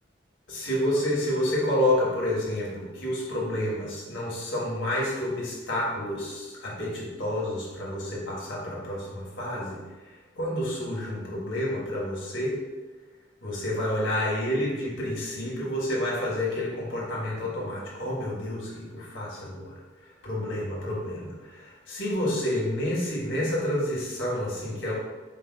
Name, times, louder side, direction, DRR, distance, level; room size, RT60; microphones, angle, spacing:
voice 1, 0.5-9.8 10.3-12.6 13.4-19.7 20.2-24.9, left 1 dB, 75° left, -5 dB, 1.3 m, -29 dB
4.7 x 2.2 x 4.5 m, 1.2 s
head